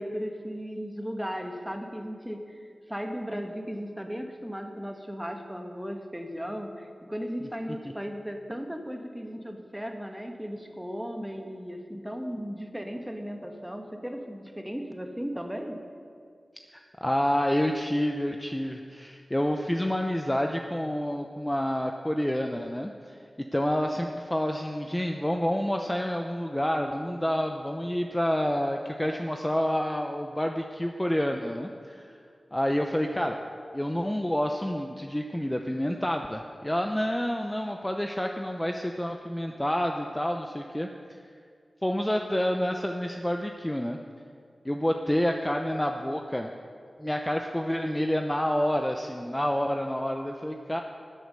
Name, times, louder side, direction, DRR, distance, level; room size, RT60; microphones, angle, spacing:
voice 1, 0.0-15.8, equal, 5° right, 4 dB, 1.3 m, -36 dB
voice 2, 16.7-32.1 32.5-33.4 33.7-41.2 41.8-44.0 44.6-46.5 47.0-50.8, equal, 10° left, 4 dB, 0.7 m, -28 dB
12.0 x 8.0 x 6.6 m, 2.2 s
wide cardioid pair, 55°, 0 cm